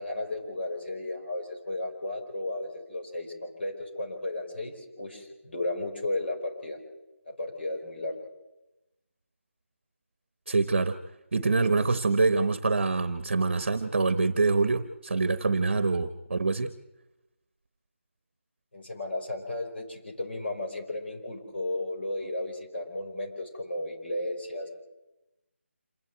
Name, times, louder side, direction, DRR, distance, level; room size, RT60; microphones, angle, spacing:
voice 1, 0.0-6.8 7.3-8.1 18.7-24.7, left 2 dB, 55° left, 1 dB, 5.6 m, -34 dB
voice 2, 10.5-11.0 11.3-16.7, right 3 dB, 50° right, 11 dB, 1.0 m, -25 dB
27.0 x 11.0 x 9.1 m, 0.98 s
figure-of-eight pair, 175°, 7 cm